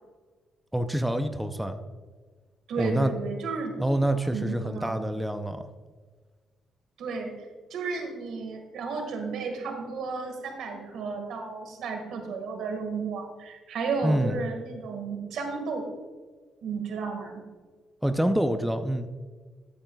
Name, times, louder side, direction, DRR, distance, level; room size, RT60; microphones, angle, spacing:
voice 1, 0.7-1.8 2.8-3.1 3.8-5.7 14.0-14.4 18.0-19.1, right 1 dB, 5° right, 7 dB, 0.6 m, -26 dB
voice 2, 2.7-3.8 4.3-5.0 7.0-15.9 16.6-17.4, right 4 dB, 75° right, 4 dB, 1.8 m, -33 dB
13.5 x 8.6 x 2.3 m, 1.4 s
cardioid pair, 90°, 0 cm